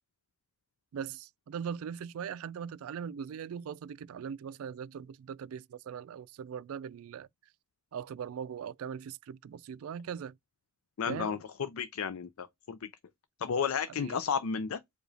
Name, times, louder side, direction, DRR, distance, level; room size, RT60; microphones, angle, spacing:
voice 1, 0.9-7.3 7.9-10.3 11.0-11.4 13.9-14.2, right 7 dB, 85° right, 0.3 m, -40 dB
voice 2, 11.0-12.9 13.4-14.8, left 6 dB, 85° left, 0.5 m, -33 dB
4.8 x 2.3 x 2.7 m
head